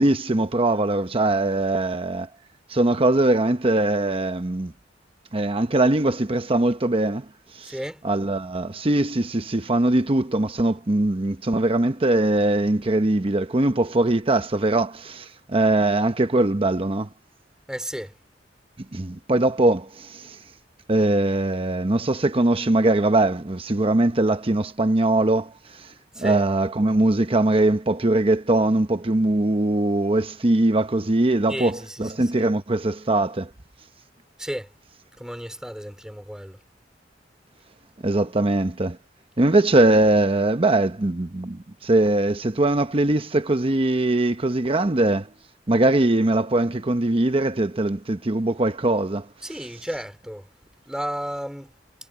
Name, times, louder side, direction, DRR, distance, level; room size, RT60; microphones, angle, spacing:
voice 1, 0.0-2.3 2.7-4.7 5.3-7.3 7.5-7.7 8.0-17.1 18.9-20.4 20.9-25.9 26.2-33.5 38.0-39.0 39.4-45.3 45.7-49.3, right 2 dB, 30° right, 0.9 m, -21 dB
voice 2, 7.6-8.1 17.7-18.1 26.1-26.5 31.5-32.5 34.4-34.7 35.2-36.6 49.4-50.5 50.8-51.7, equal, 5° right, 2.9 m, -33 dB
head